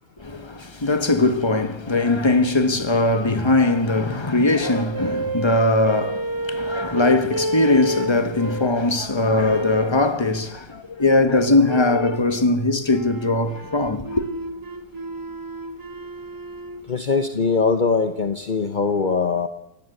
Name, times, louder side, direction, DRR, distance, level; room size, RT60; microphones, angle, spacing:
voice 1, 0.2-14.2, left 2 dB, 15° left, 1.2 m, -20 dB
sound 1, 4.6-8.8 9.4-10.0 11.6-12.3 12.9-16.8, right 1 dB, 15° right, 0.7 m, -30 dB
voice 2, 16.9-19.5, left 4 dB, 40° left, 0.7 m, -21 dB
26.0 x 18.5 x 8.1 m
omnidirectional pair, 2.4 m